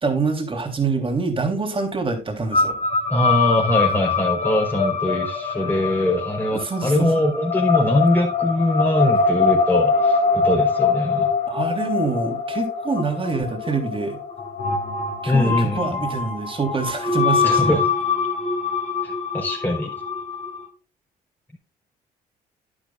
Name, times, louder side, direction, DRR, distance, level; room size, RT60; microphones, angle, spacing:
voice 1, 0.0-2.8 6.5-7.1 11.5-14.2 15.2-17.7, right 4 dB, 30° right, 4 dB, 3.4 m, -25 dB
sound 1, 2.5-20.7, left 4 dB, 40° left, 3.2 m, -23 dB
voice 2, 3.1-11.3 15.3-16.0 17.4-17.9 19.0-19.9, left 1 dB, 10° left, 0 dB, 3.9 m, -22 dB
10.5 x 10.5 x 2.4 m, 0.33 s
cardioid pair, 80°, 17 cm